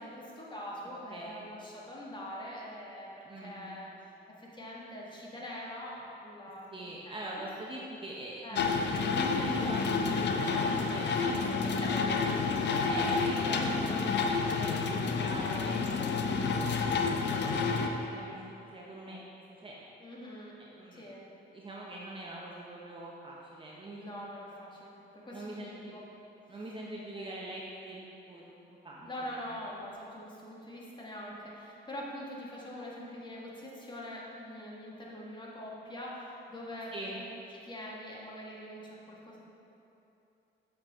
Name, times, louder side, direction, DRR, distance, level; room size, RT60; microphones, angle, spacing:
voice 1, 0.0-7.5 8.4-8.7 11.6-13.8 14.1-14.5 20.0-20.6 20.9-21.2 24.0-26.0 27.1-27.3 29.1-37.2 37.5-39.4, left 1 dB, 25° left, -5 dB, 1.7 m, -44 dB
voice 2, 1.1-1.5 3.2-3.8 6.7-12.3 12.8-17.0 17.3-18.4 18.7-19.2 19.6-19.8 20.6-21.1 21.5-24.0 25.3-25.9 26.5-29.1 36.9-37.2, right 1 dB, 25° right, -4 dB, 0.8 m, -42 dB
sound 1, 8.5-17.9, left 4 dB, 60° left, 0.6 m, -29 dB
7.8 x 6.0 x 3.6 m, 2.9 s
cardioid pair, 90°, 20 cm